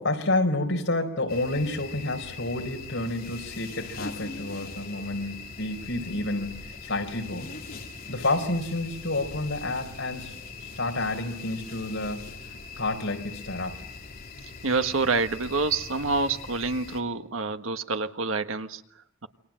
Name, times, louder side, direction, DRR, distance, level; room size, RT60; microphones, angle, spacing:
voice 1, 0.0-6.5 6.8-7.5 8.1-10.3 10.8-12.3 12.8-13.8, left 2 dB, 65° left, 4.6 m, -29 dB
sound 1, 1.3-17.0, left 4 dB, 45° left, 2.9 m, -41 dB
voice 2, 14.4-19.3, right 4 dB, 85° right, 1.4 m, -28 dB
28.5 x 24.0 x 7.6 m
head